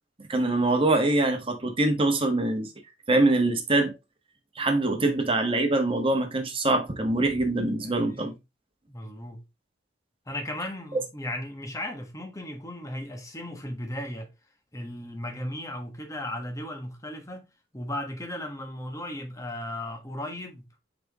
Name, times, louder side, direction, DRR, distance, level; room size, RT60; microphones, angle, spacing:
voice 1, 0.3-2.7 3.1-3.9 4.6-8.3, right 2 dB, 30° right, 1.4 m, -24 dB
voice 2, 4.8-5.2 7.8-8.4 8.9-9.4 10.3-14.3 14.7-17.5 17.7-20.7, left 1 dB, 20° left, 1.4 m, -36 dB
6.0 x 5.2 x 3.0 m
head